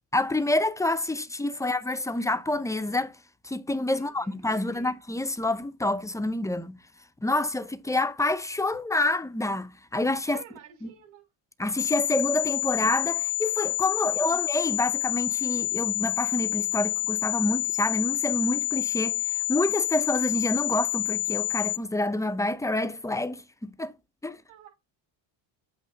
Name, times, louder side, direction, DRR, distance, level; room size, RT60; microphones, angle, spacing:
voice 1, 0.1-3.2 3.4-6.8 7.2-10.4 10.8-10.9 11.6-23.9 24.2-24.4, left 2 dB, 5° left, 0.5 m, -28 dB
voice 2, 3.8-4.9 10.3-11.3 14.0-14.4 24.3-24.7, right 8 dB, 75° right, 5.3 m, -52 dB
sound 1, 11.8-21.8, left 17 dB, 55° left, 0.5 m, -28 dB
8.4 x 3.0 x 5.1 m
cardioid pair, 115°, 47 cm